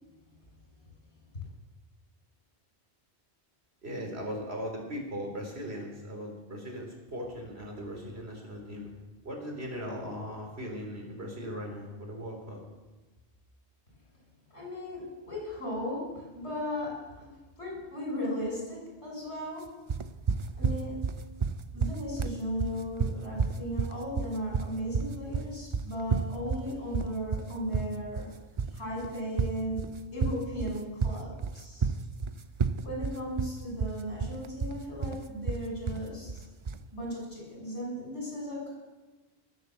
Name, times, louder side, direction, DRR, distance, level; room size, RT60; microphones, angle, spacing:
voice 1, 3.8-8.9 9.2-12.6, equal, 70° right, 1 dB, 3.7 m, -38 dB
voice 2, 14.5-19.8 20.5-21.1 21.7-28.3 28.7-31.9 32.8-36.4 36.9-38.7, equal, 85° left, -3 dB, 6.3 m, -36 dB
sound 1, 19.9-36.9, right 5 dB, 40° right, 0.5 m, -31 dB
19.0 x 8.0 x 7.5 m, 1.2 s
omnidirectional pair, 1.1 m